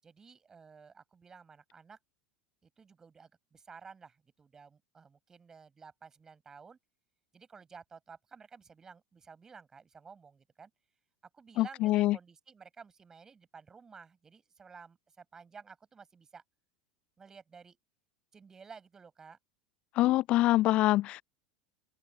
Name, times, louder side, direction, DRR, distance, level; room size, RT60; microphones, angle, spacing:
voice 1, 0.0-2.0 2.6-6.8 7.3-10.7 11.3-16.4 17.2-17.8 18.3-19.4, right 5 dB, 20° right, 6.0 m, -53 dB
voice 2, 11.6-12.2 20.0-21.2, left 16 dB, 45° left, 0.3 m, -25 dB
open air
figure-of-eight pair, 75°, 3 cm